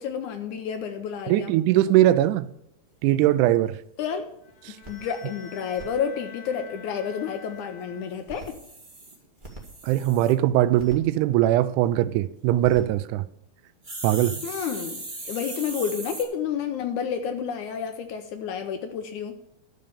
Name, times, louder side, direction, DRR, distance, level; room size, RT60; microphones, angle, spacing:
voice 1, 0.0-1.5 4.0-4.3 4.9-8.5 14.4-19.5, left 7 dB, 75° left, 1.8 m, -30 dB
voice 2, 1.3-2.5 3.0-3.8 4.7-4.8 9.8-13.2 14.0-14.4, right 13 dB, 85° right, 1.8 m, -21 dB
sound 1, 3.7-3.8 4.2-4.3 4.5-4.6 4.8-5.9 8.1-10.3 10.8-11.0 12.4-12.8 13.8-16.2, right 2 dB, 25° right, 1.1 m, -39 dB
Bowed string instrument, 4.4-8.5, left 6 dB, 60° left, 1.9 m, -46 dB
12.0 x 6.4 x 7.0 m
omnidirectional pair, 4.2 m